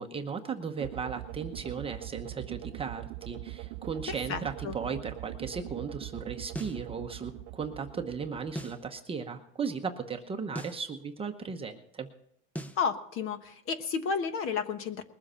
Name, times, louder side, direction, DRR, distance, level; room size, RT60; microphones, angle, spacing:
voice 1, 0.0-12.1, right 5 dB, 15° right, 5 dB, 0.9 m, -36 dB
sound 1, 0.8-9.0, right 17 dB, 75° right, 0.6 m, -42 dB
voice 2, 4.1-4.7 12.8-15.0, left 6 dB, 40° left, 10 dB, 1.2 m, -32 dB
sound 2, 6.5-6.8 8.5-8.8 10.5-10.8 12.5-12.8, equal, 5° left, 0.5 m, -39 dB
21.0 x 7.7 x 5.7 m, 0.72 s
supercardioid pair, 145°, 34 cm